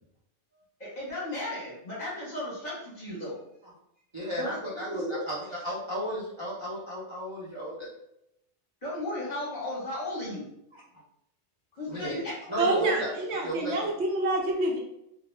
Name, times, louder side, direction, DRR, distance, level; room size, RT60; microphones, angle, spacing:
voice 1, 0.8-3.4 4.4-4.6 4.8-5.2 8.8-10.5 11.8-12.9, left 1 dB, 40° left, -7 dB, 0.9 m, -35 dB
voice 2, 4.1-7.9 10.7-10.8 11.9-12.2 12.5-13.1 13.4-13.9, equal, 30° right, -8 dB, 0.6 m, -34 dB
voice 3, 12.6-14.8, right 2 dB, 70° right, 0 dB, 0.8 m, -27 dB
2.4 x 2.1 x 3.1 m, 0.79 s
omnidirectional pair, 1.2 m